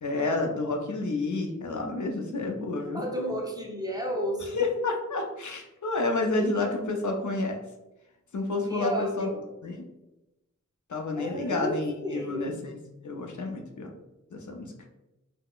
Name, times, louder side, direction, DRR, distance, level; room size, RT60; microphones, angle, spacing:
voice 1, 0.0-3.0 4.6-7.6 8.3-9.3 9.6-9.9 10.9-12.8 13.0-13.9 14.3-14.7, left 2 dB, 70° left, 2 dB, 0.5 m, -29 dB
voice 2, 2.9-4.6 8.7-9.4 11.1-12.6, equal, 15° right, -1 dB, 0.5 m, -32 dB
3.7 x 2.0 x 2.3 m, 0.97 s
wide cardioid pair, 50°, 31 cm